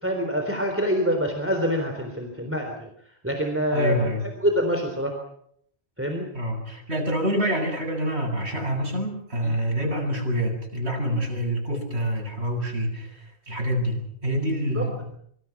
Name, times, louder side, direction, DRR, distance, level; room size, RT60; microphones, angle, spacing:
voice 1, 0.0-2.9 3.2-4.0 4.4-5.1 6.0-6.3 9.4-9.5 14.7-15.0, equal, 10° right, 3 dB, 3.7 m, -25 dB
voice 2, 3.7-4.2 6.3-15.0, equal, 80° right, 0 dB, 8.3 m, -27 dB
26.0 x 24.5 x 6.1 m, 0.69 s
omnidirectional pair, 1.1 m